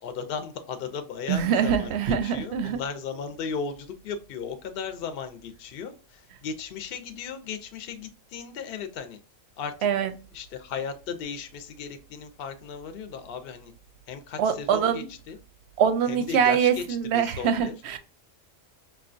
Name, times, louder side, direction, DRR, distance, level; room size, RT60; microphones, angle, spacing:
voice 1, 0.0-9.2 9.6-9.7 10.3-13.7 14.1-15.4 16.1-16.8 17.1-17.7, left 6 dB, 60° left, 0.7 m, -36 dB
voice 2, 1.3-2.8 9.8-10.1 14.4-15.1 15.8-18.0, right 8 dB, 65° right, 0.7 m, -24 dB
5.4 x 2.2 x 2.5 m
omnidirectional pair, 1.4 m